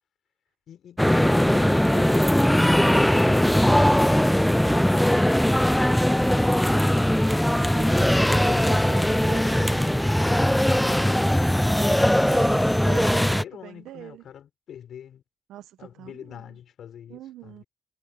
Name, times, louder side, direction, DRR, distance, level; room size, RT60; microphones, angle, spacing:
sound 1, 1.0-13.4, equal, 5° left, 0.4 m, -20 dB
voice 1, 7.2-10.0 12.2-14.2 15.5-16.6 17.1-17.6, right 12 dB, 85° right, 1.0 m, -42 dB
voice 2, 13.0-15.2 15.8-17.6, left 9 dB, 75° left, 5.1 m, -44 dB
supercardioid pair, 60°, 0 cm